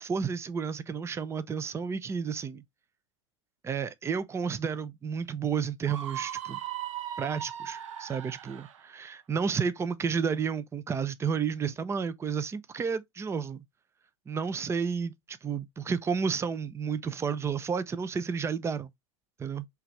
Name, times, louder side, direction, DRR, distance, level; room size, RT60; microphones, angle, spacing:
voice 1, 0.0-2.6 3.6-6.6 7.2-13.6 14.3-18.9 19.4-19.7, right 6 dB, 15° right, 0.5 m, -31 dB
Screaming, 5.8-8.8, right 11 dB, 75° right, 0.7 m, -38 dB
5.7 x 2.5 x 3.2 m
hypercardioid pair, 105°, 16 cm